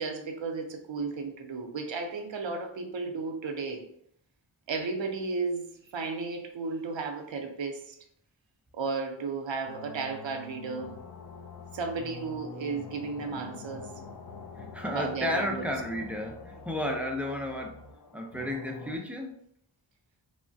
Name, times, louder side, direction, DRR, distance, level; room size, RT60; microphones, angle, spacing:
voice 1, 0.0-3.8 4.7-8.0 8.7-10.9 11.7-13.9 14.8-15.7, right 4 dB, 75° right, 4 dB, 0.6 m, -34 dB
sound 1, 9.6-19.0, left 4 dB, 50° left, 0.4 m, -45 dB
voice 2, 14.6-17.8 18.1-19.4, left 1 dB, 5° right, 1 dB, 0.4 m, -33 dB
3.1 x 2.1 x 2.6 m, 0.70 s
wide cardioid pair, 45°, 45 cm